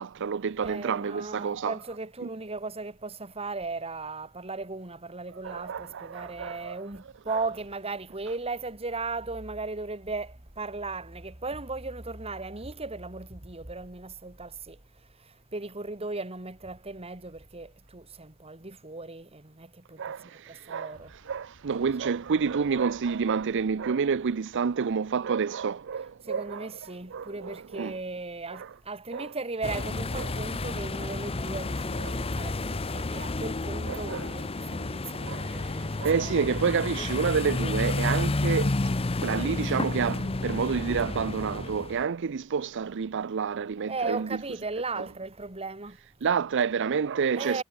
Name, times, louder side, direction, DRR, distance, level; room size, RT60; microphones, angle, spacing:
voice 1, 0.0-1.8 5.4-6.8 7.3-7.4 20.0-28.0 28.5-28.7 29.1-29.3 30.2-30.3 32.0-32.2 33.9-34.3 35.2-38.9 39.2-44.4 45.0-45.1 46.2-47.6, right 6 dB, 60° right, 0.5 m, -29 dB
voice 2, 0.6-14.8 15.2-20.0 20.5-21.1 26.2-36.3 43.9-46.0 47.4-47.6, right 3 dB, 30° right, 2.5 m, -37 dB
sound 1, 20.9-27.9, right 2 dB, 85° right, 4.2 m, -58 dB
sound 2, 29.6-42.0, left 2 dB, 25° left, 0.8 m, -31 dB
head